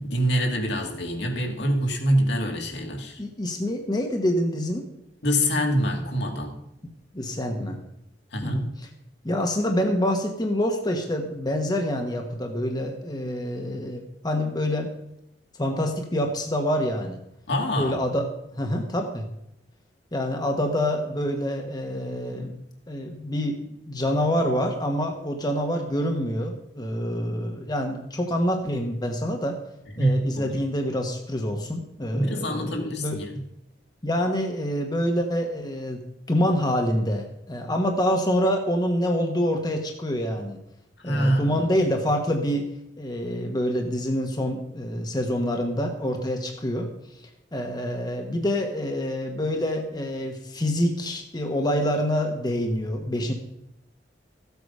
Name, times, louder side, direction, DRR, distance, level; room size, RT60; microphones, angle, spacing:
voice 1, 0.0-3.2 5.2-6.6 8.3-8.7 17.5-18.0 30.0-30.6 32.1-33.4 41.0-41.6, equal, 70° left, 2 dB, 2.3 m, -25 dB
voice 2, 3.2-4.9 7.1-7.8 8.4-8.9 9.2-14.9 15.6-17.2 17.8-18.3 18.5-19.3 20.1-22.5 22.9-29.6 30.0-33.2 34.0-36.0 36.3-40.6 41.0-42.7 43.0-47.2 47.5-53.3, equal, 25° left, 3 dB, 1.2 m, -26 dB
14.5 x 8.2 x 5.5 m, 0.82 s
head